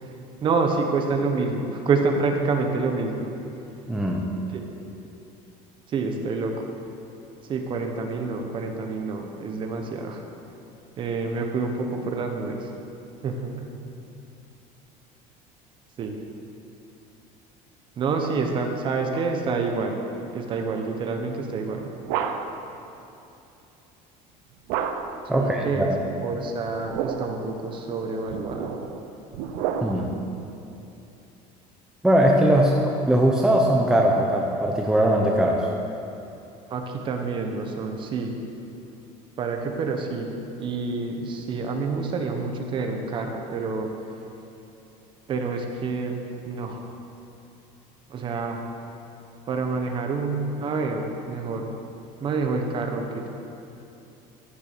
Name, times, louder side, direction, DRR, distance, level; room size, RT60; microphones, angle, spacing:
voice 1, 0.4-3.3 4.5-4.6 5.9-6.6 7.5-10.2 11.0-12.6 13.2-13.7 16.0-16.2 18.0-20.0 20.3-21.9 25.3-25.9 26.2-28.8 36.7-38.4 39.4-43.9 45.3-46.2 46.4-46.8 48.1-48.6 49.5-51.7 52.2-53.3, right 4 dB, 30° right, 3 dB, 1.1 m, -27 dB
voice 2, 3.9-4.3 25.3-26.0 29.8-30.1 32.0-35.7, right 1 dB, 5° right, -1 dB, 0.7 m, -20 dB
sound 1, 21.5-22.7 24.7-25.3 26.7-27.5 28.3-30.2, right 7 dB, 70° right, 0.8 m, -30 dB
14.0 x 6.9 x 6.1 m, 2.9 s
cardioid pair, 165°, 15 cm